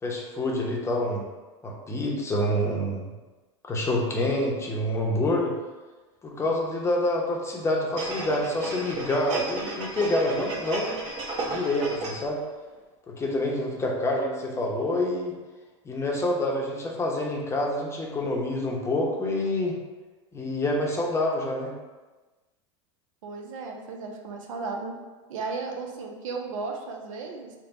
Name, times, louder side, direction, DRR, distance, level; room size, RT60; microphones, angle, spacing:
voice 1, 0.0-1.2 1.6-3.1 3.7-5.5 6.2-11.0 11.5-12.4 13.1-15.3 15.8-19.8 20.3-21.7, left 1 dB, 15° left, -1 dB, 0.7 m, -27 dB
sound 1, 8.0-12.4 12.7-12.8, right 3 dB, 45° right, 1.0 m, -34 dB
voice 2, 23.2-25.0 25.3-27.5, right 4 dB, 80° right, 2 dB, 0.7 m, -35 dB
3.4 x 2.2 x 4.0 m, 1.2 s
supercardioid pair, 115°, 16 cm